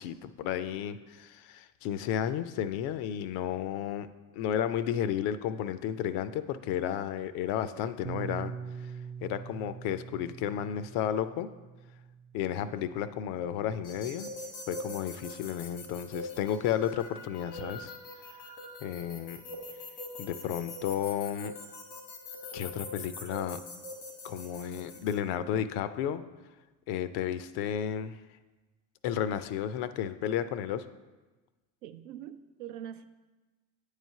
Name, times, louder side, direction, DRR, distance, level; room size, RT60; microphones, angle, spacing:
voice 1, 0.0-4.1 4.3-8.9 9.2-11.5 12.3-14.3 14.7-17.9 18.8-19.4 20.2-21.5 22.5-23.6 24.2-26.2 26.9-28.2 29.0-30.9, left 9 dB, 55° left, 13 dB, 0.5 m, -32 dB
Bass guitar, 8.0-14.3, right 6 dB, 15° right, 0.4 m, -44 dB
sound 1, 13.8-25.1, left 2 dB, 90° left, 1.3 m, -43 dB
voice 2, 31.8-33.1, right 10 dB, 70° right, 10 dB, 0.6 m, -43 dB
8.8 x 3.3 x 5.4 m, 1.2 s
hypercardioid pair, 70°, 50 cm